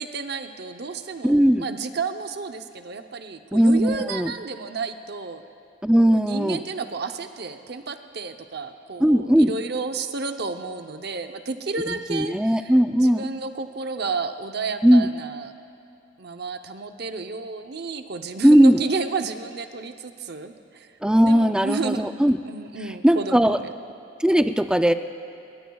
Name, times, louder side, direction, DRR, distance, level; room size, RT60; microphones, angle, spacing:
voice 1, 0.0-5.4 6.1-12.7 13.0-15.5 16.2-20.9 21.2-22.2 22.4-23.7, right 4 dB, 55° right, 7 dB, 0.7 m, -31 dB
voice 2, 1.2-1.7 3.5-4.3 5.8-6.6 9.0-9.5 11.9-13.3 14.8-15.1 18.4-18.8 21.0-22.4 23.0-23.6 24.2-24.9, equal, 5° right, 9 dB, 0.4 m, -18 dB
25.5 x 22.0 x 2.3 m, 2.7 s
head